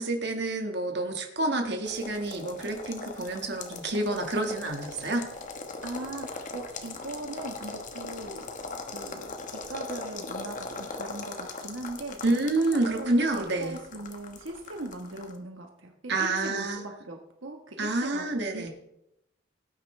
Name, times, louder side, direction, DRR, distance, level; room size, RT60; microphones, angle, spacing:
voice 1, 0.0-5.2 12.2-13.7 16.1-16.8 17.8-18.7, right 2 dB, 55° right, 3 dB, 1.6 m, -28 dB
sound 1, 1.8-15.4, left 3 dB, 40° left, 1.3 m, -40 dB
voice 2, 5.8-8.4 8.9-12.2 12.6-12.7 13.0-18.2 18.5-18.7, right 2 dB, 80° right, 2 dB, 1.4 m, -39 dB
18.0 x 9.5 x 3.3 m, 0.81 s
head